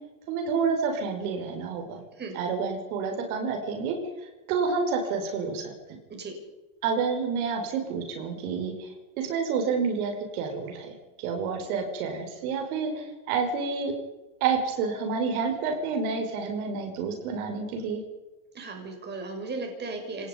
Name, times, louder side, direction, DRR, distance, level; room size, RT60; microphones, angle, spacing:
voice 1, 0.3-2.0 2.3-4.0 4.5-5.7 6.8-10.9 11.2-13.9 14.4-18.0, right 5 dB, 70° right, 3 dB, 5.8 m, -29 dB
voice 2, 18.5-20.3, right 3 dB, 25° right, 2 dB, 5.9 m, -36 dB
26.0 x 19.0 x 5.4 m, 1.1 s
supercardioid pair, 130°, 44 cm